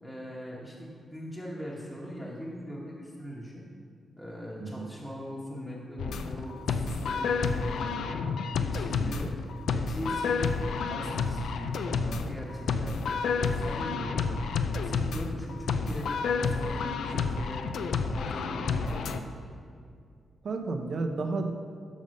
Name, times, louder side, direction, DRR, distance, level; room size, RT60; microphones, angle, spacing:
voice 1, 0.0-3.6 4.2-8.2 8.5-9.3 9.7-14.4 14.7-19.4, equal, 10° left, -5 dB, 1.1 m, -40 dB
voice 2, 4.6-4.9 8.9-9.2 20.4-21.5, right 3 dB, 60° right, 5 dB, 0.7 m, -32 dB
sound 1, 6.0-19.2, left 5 dB, 80° left, 0.3 m, -30 dB
6.3 x 5.2 x 5.3 m, 2.3 s
cardioid pair, 95°, 0 cm